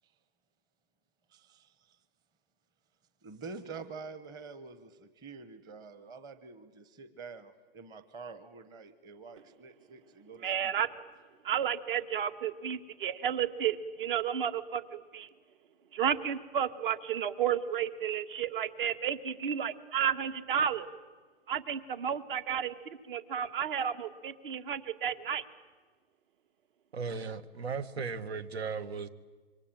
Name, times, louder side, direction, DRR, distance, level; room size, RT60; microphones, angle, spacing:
voice 1, 1.3-2.0 3.2-10.7, right 4 dB, 15° right, 11 dB, 0.9 m, -47 dB
voice 2, 10.4-10.9 11.4-15.3 15.9-20.9 21.5-22.7 23.1-25.4, right 8 dB, 55° right, 11 dB, 1.8 m, -32 dB
voice 3, 26.9-29.1, right 5 dB, 85° right, 14 dB, 1.8 m, -36 dB
27.5 x 24.5 x 9.0 m, 1.4 s
hypercardioid pair, 160°, 31 cm